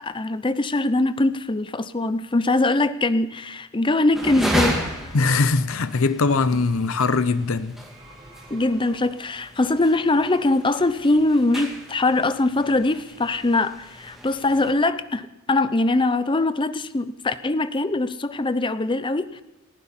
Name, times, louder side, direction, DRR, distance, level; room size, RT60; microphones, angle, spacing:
voice 1, 0.0-5.1 8.5-19.4, left 2 dB, 20° left, 0.6 m, -22 dB
sound 1, 4.1-14.7, equal, ahead, 2.9 m, -33 dB
voice 2, 5.1-7.7, left 4 dB, 60° left, 0.7 m, -21 dB
sound 2, 7.7-9.5, right 2 dB, 25° right, 4.4 m, -50 dB
30.0 x 11.5 x 4.3 m
head